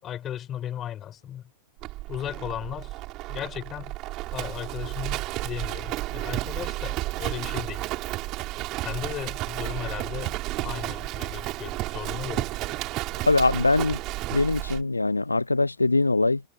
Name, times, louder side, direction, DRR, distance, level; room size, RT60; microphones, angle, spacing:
voice 1, 0.0-1.4 2.1-3.0 3.3-4.0 4.3-7.8 8.8-10.4 10.6-12.5, left 11 dB, 30° left, 4.6 m, -36 dB
Livestock farm animals working animals, 1.8-14.8, right 19 dB, 40° right, 5.8 m, -32 dB
voice 2, 13.2-14.0 14.3-16.4, left 2 dB, 80° left, 0.4 m, -22 dB
figure-of-eight pair, 90°, 0 cm